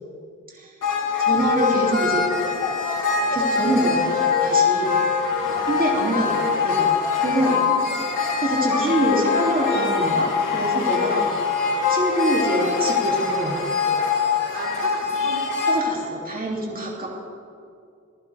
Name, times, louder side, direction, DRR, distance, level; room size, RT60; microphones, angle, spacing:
sound 1, 0.8-15.8, left 5 dB, 85° left, 2.1 m, -23 dB
voice 1, 1.2-2.2 3.3-4.9 5.7-6.9 7.2-7.6 8.4-11.3 11.9-13.6 15.6-17.1, right 1 dB, 30° right, -4 dB, 3.0 m, -25 dB
voice 2, 5.5-5.8 7.6-7.9 14.5-15.5 16.8-17.1, right 2 dB, 60° right, -2 dB, 3.0 m, -37 dB
24.5 x 15.0 x 3.6 m, 2.4 s
wide cardioid pair, 130°, 31 cm